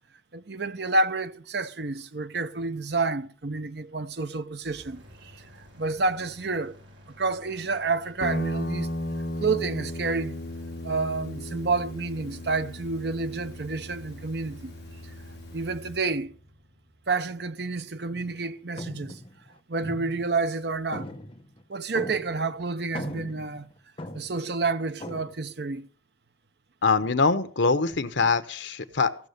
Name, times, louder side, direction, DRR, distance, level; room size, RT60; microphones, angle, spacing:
voice 1, 0.3-5.4 5.8-6.8 7.2-8.9 9.4-10.4 10.8-14.7 15.5-16.3 17.1-19.2 19.7-21.1 21.7-23.7 24.1-25.9, right 3 dB, 60° right, 0.8 m, -29 dB
sound 1, 4.6-18.6, left 1 dB, 90° right, 3.6 m, -53 dB
Guitar, 8.2-16.0, left 1 dB, 60° left, 1.4 m, -36 dB
sound 2, 18.1-18.4 18.8-20.6 20.9-22.5 22.8-24.5 25.0-25.3, left 1 dB, 30° left, 1.1 m, -40 dB
voice 2, 26.8-29.3, left 4 dB, 80° left, 1.0 m, -24 dB
15.5 x 6.5 x 6.7 m
head